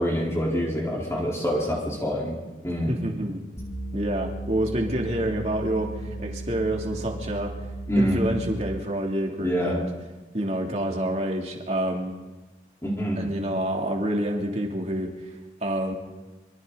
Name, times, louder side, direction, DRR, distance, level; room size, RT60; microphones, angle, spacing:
voice 1, 0.0-2.4 2.6-2.9 7.9-8.2 9.4-9.8 12.8-13.2, equal, 15° left, -4 dB, 4.1 m, -25 dB
voice 2, 2.9-3.4 3.9-7.5 8.0-9.9 10.3-12.1 13.2-15.9, right 1 dB, 40° right, 0 dB, 3.1 m, -28 dB
sound 1, 3.6-8.9, right 1 dB, 35° left, 2.5 m, -36 dB
25.5 x 24.5 x 4.1 m, 1.2 s
head